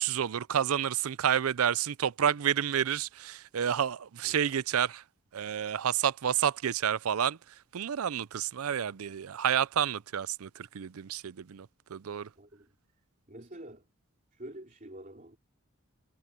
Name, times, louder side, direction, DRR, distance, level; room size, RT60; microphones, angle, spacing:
voice 1, 0.0-5.0 5.3-7.4 7.7-12.3, right 9 dB, 85° right, 0.5 m, -29 dB
voice 2, 12.3-12.7 13.3-13.8 14.3-15.4, right 1 dB, 40° right, 3.2 m, -47 dB
head